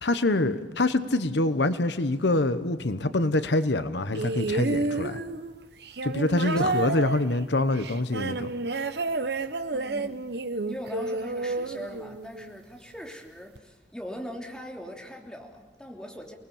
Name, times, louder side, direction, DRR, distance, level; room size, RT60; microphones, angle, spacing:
voice 1, 0.0-5.2 6.0-8.5, left 2 dB, 75° left, 12 dB, 1.0 m, -25 dB
sound 1, 4.2-12.5 13.6-13.7, right 3 dB, 65° right, 1.1 m, -30 dB
voice 2, 6.4-7.1 9.7-10.2 10.7-16.4, equal, 5° left, 1 dB, 3.2 m, -41 dB
29.5 x 20.0 x 7.2 m, 1.3 s
head